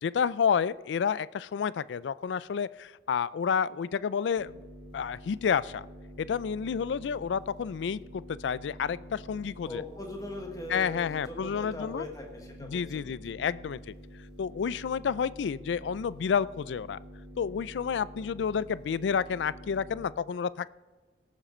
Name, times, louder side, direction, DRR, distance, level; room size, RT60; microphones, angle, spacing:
voice 1, 0.0-4.5 4.9-5.9 6.2-9.8 10.7-12.0 12.7-13.9 14.4-17.0 17.4-20.7, left 7 dB, 85° left, 19 dB, 0.3 m, -30 dB
sound 1, 4.3-20.0, equal, 80° right, 2.8 m, -48 dB
voice 2, 9.6-13.5, left 2 dB, 20° left, 2 dB, 1.3 m, -40 dB
17.5 x 7.4 x 4.3 m, 1.3 s
head